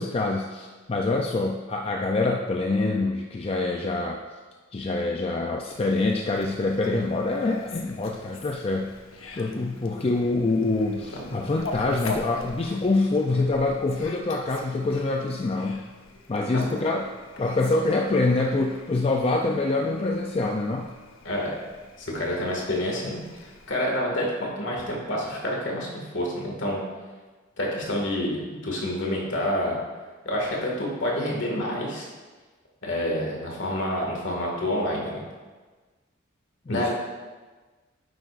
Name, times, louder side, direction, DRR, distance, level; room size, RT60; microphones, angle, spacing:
voice 1, 0.0-4.2 4.7-8.9 9.4-15.8 16.3-17.1 17.4-20.9 36.7-36.9, left 2 dB, 30° left, 2 dB, 0.4 m, -25 dB
Fowl, 5.7-23.7, left 3 dB, 75° left, 0.9 m, -44 dB
voice 2, 21.2-21.6 22.0-26.8 27.6-29.7 30.2-32.1 32.8-35.2 36.7-36.9, left 1 dB, 60° left, -2 dB, 2.0 m, -28 dB
9.8 x 7.7 x 2.5 m, 1.3 s
head